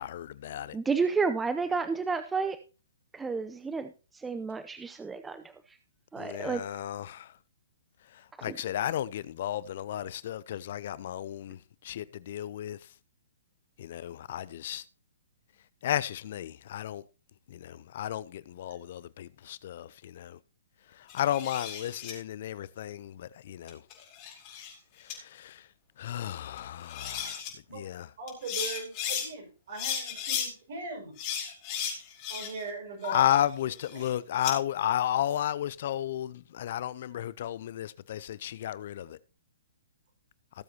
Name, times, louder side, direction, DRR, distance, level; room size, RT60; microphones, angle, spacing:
voice 1, 0.0-0.8 6.2-7.3 8.4-11.6 11.8-12.8 13.8-14.8 15.8-17.0 17.5-20.4 21.1-23.8 25.3-25.5 26.0-27.4 27.7-28.1 33.0-39.2, left 11 dB, 55° left, 0.6 m, -33 dB
voice 2, 0.7-2.6 3.1-5.8 6.1-6.6 8.5-8.6, right 4 dB, 10° right, 0.7 m, -31 dB
sound 1, 21.1-22.1 23.7-24.7 25.1-25.2 26.6-26.7 26.9-27.5 28.3-29.3 29.7-30.5 31.2-32.7 33.0-34.5, left 8 dB, 35° left, 4.7 m, -35 dB
voice 3, 28.2-31.1 32.3-33.3 33.9-34.1, right 3 dB, 60° right, 6.4 m, -40 dB
18.5 x 7.8 x 2.9 m
hypercardioid pair, 130°, 0 cm